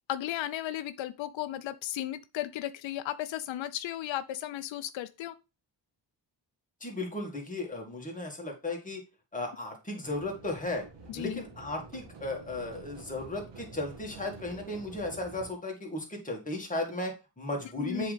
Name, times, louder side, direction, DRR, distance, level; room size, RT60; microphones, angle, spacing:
voice 1, 0.1-5.3 11.1-11.4 17.8-18.1, left 13 dB, 90° left, 0.5 m, -35 dB
voice 2, 6.8-9.0 9.3-10.9 11.1-18.1, left 2 dB, 20° left, 1.9 m, -35 dB
sound 1, 10.0-15.5, right 3 dB, 75° right, 1.5 m, -48 dB
7.6 x 3.9 x 3.3 m
wide cardioid pair, 115°, 44 cm